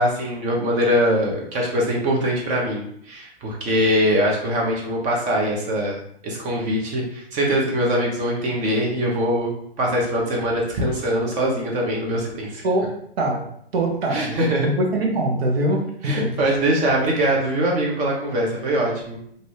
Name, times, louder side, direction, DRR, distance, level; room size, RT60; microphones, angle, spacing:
voice 1, 0.0-9.5 9.8-12.6 14.1-14.7 16.0-19.2, equal, 25° right, -1 dB, 0.8 m, -22 dB
voice 2, 12.6-16.2, right 1 dB, 65° right, 1 dB, 0.9 m, -23 dB
2.6 x 2.6 x 3.3 m, 0.67 s
hypercardioid pair, 120°, 32 cm